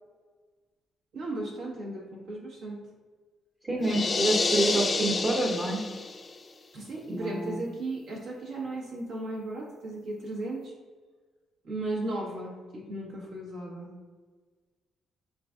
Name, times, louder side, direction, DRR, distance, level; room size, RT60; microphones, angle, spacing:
voice 1, 1.1-2.8 6.7-10.7 11.6-13.9, right 2 dB, 85° right, -4 dB, 1.3 m, -36 dB
voice 2, 3.6-5.8 7.1-7.6, right 2 dB, 30° right, -4 dB, 0.7 m, -28 dB
sound 1, 3.8-6.3, left 3 dB, 35° left, 0.4 m, -28 dB
4.1 x 3.8 x 2.4 m, 1.4 s
cardioid pair, 90°, 0 cm